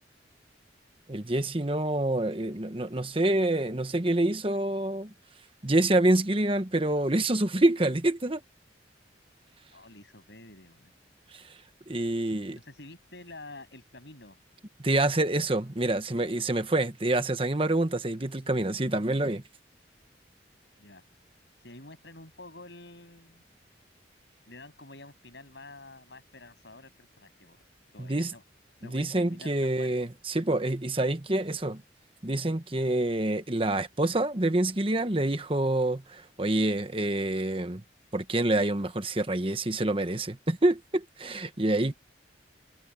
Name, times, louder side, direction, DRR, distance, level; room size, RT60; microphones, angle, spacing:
voice 1, 1.1-5.1 5.6-8.4 11.3-11.4 11.9-12.6 14.8-19.4 28.0-28.3 28.9-31.8 32.2-37.8 38.1-41.9, right 1 dB, 30° right, 1.2 m, -27 dB
voice 2, 9.7-10.9 12.2-14.4 20.8-21.0 21.6-23.4 24.5-27.6 27.9-28.4 28.8-30.0, left 2 dB, 65° left, 8.0 m, -49 dB
head